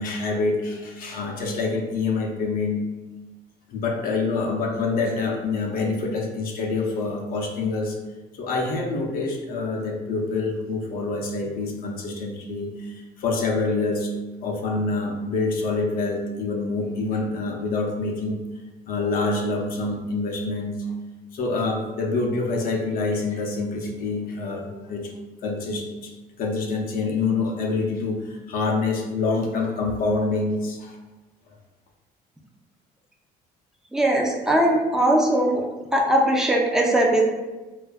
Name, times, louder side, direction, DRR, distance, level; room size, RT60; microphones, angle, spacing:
voice 1, 0.0-2.8 3.7-8.0 8.4-14.1 14.4-18.4 18.9-20.8 21.3-25.1 25.4-31.0, left 3 dB, 60° left, 1 dB, 0.5 m, -26 dB
voice 2, 33.9-35.6 35.9-37.2, right 1 dB, 5° right, -1 dB, 0.4 m, -20 dB
2.5 x 2.3 x 2.3 m, 1.2 s
cardioid pair, 110°, 17 cm